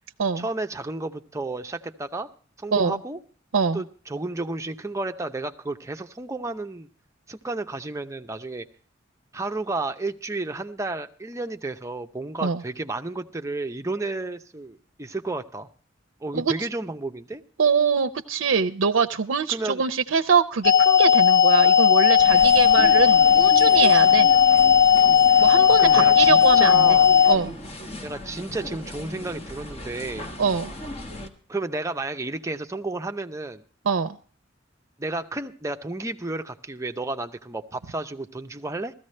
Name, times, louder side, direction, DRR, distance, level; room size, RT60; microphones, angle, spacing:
voice 1, 0.4-2.3 2.6-3.2 3.7-6.9 7.3-8.7 9.3-15.7 16.2-17.4 19.5-19.8 25.8-27.1 28.0-30.3 31.5-33.6 35.0-38.9, right 2 dB, 15° right, 7 dB, 0.6 m, -32 dB
voice 2, 17.6-24.3 25.4-27.0 27.3-27.5 30.4-30.7 33.9-34.2, right 6 dB, 90° right, 9 dB, 0.5 m, -23 dB
sound 1, 20.6-27.4, left 8 dB, 55° left, 0.6 m, -16 dB
sound 2, 22.2-31.3, left 1 dB, 30° left, 1.3 m, -37 dB
16.0 x 14.0 x 3.2 m, 0.43 s
head